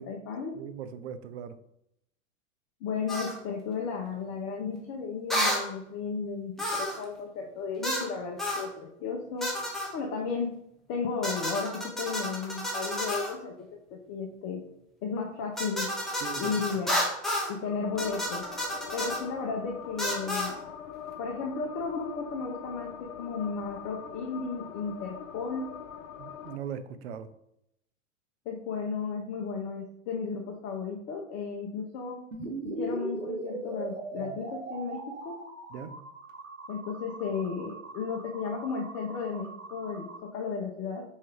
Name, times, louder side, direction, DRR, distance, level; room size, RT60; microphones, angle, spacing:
voice 1, 0.0-0.6 2.8-9.5 9.9-10.6 10.9-14.6 15.0-15.9 16.4-16.9 17.5-18.4 18.9-20.6 21.2-25.7 28.5-32.2 32.6-35.4 36.7-41.0, left 5 dB, 35° left, 1 dB, 0.6 m, -34 dB
voice 2, 0.6-1.6 16.2-16.5 26.2-27.3 34.2-34.4 35.7-36.0, right 8 dB, 55° right, 12 dB, 0.5 m, -40 dB
sound 1, 3.1-3.4 5.3-5.7 6.6-7.0 7.8-8.1 8.4-8.7 9.4-9.9 11.2-13.3 15.6-17.5 18.0-19.2 20.0-20.5, equal, ahead, 0.8 m, -31 dB
sound 2, 17.6-26.6, left 8 dB, 85° left, 0.5 m, -43 dB
sound 3, 32.3-40.2, right 2 dB, 85° right, 0.9 m, -40 dB
4.2 x 2.7 x 3.4 m, 0.77 s
hypercardioid pair, 100°, 39 cm